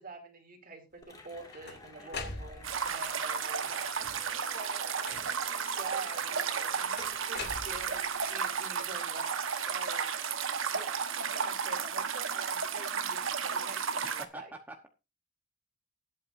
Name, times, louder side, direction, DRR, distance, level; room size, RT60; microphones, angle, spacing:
voice 1, 0.0-3.9 4.5-10.1 10.7-14.5, right 3 dB, 45° right, 5 dB, 2.8 m, -46 dB
Cheering / Applause, 1.0-11.0, left 2 dB, 20° left, 2.2 m, -53 dB
sound 1, 1.1-3.0 3.8-4.3 5.0-5.6 7.0-8.3, left 3 dB, 60° left, 2.5 m, -43 dB
voice 2, 2.0-2.3 4.1-4.4 14.0-14.9, right 2 dB, 10° right, 4 dB, 1.0 m, -48 dB
sound 2, 2.6-14.3, right 6 dB, 90° right, 1.2 m, -33 dB
19.5 x 8.5 x 2.6 m, 0.27 s
head